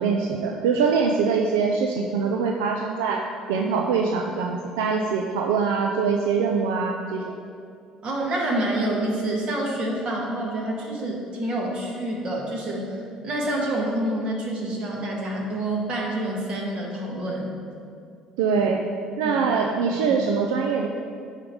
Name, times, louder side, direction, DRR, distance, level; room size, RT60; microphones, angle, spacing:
voice 1, 0.0-7.3 18.4-18.8 19.2-20.9, right 5 dB, 85° right, 2 dB, 0.4 m, -23 dB
voice 2, 8.0-17.5 19.2-19.4 20.1-20.2, right 1 dB, 50° right, -2 dB, 1.8 m, -27 dB
10.5 x 3.7 x 4.8 m, 2.3 s
supercardioid pair, 70°, 2 cm